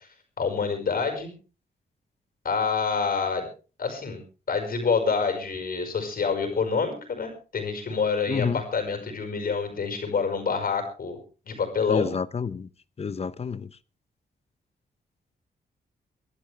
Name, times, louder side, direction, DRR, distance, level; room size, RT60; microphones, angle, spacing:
voice 1, 0.4-1.3 2.4-3.5 3.8-4.2 4.5-11.2 11.5-12.1, left 5 dB, 55° left, 5.3 m, -27 dB
voice 2, 8.3-8.6 11.9-12.7 13.0-13.7, left 5 dB, 35° left, 0.7 m, -29 dB
24.5 x 12.0 x 3.4 m
cardioid pair, 105°, 18 cm